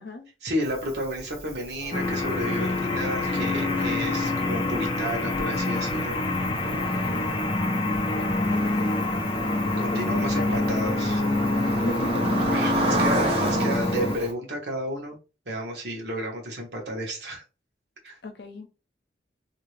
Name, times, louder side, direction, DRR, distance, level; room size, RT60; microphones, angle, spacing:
voice 1, 0.4-6.2 9.8-11.2 12.5-15.2 15.5-17.4 18.0-18.2, equal, 70° right, 1.2 m, -32 dB
Cricket, 0.6-14.3, right 2 dB, 30° right, 0.9 m, -33 dB
sound 1, 1.8-9.2, equal, 10° right, 1.1 m, -42 dB
sound 2, 1.9-14.2, left 2 dB, 25° left, 0.5 m, -26 dB
voice 2, 6.7-7.3 8.1-8.9 9.7-10.7 11.1-12.5 18.2-18.7, left 2 dB, 70° left, 0.7 m, -37 dB
2.8 x 2.8 x 3.2 m
head